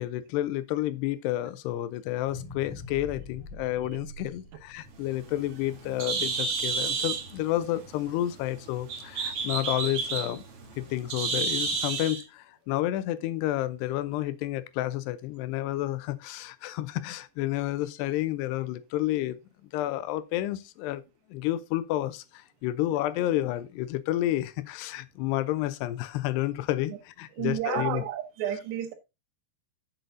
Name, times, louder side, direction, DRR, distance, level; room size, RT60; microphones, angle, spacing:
voice 1, 0.0-10.4 10.8-21.0 21.3-28.0, left 14 dB, 90° left, 2.8 m, -30 dB
sound 1, 2.2-6.4 6.9-7.0, left 2 dB, 55° left, 4.3 m, -44 dB
Bird, 4.9-12.2, right 5 dB, 50° right, 1.9 m, -32 dB
voice 2, 27.4-28.9, right 10 dB, 85° right, 3.6 m, -31 dB
8.2 x 8.0 x 3.8 m
omnidirectional pair, 4.8 m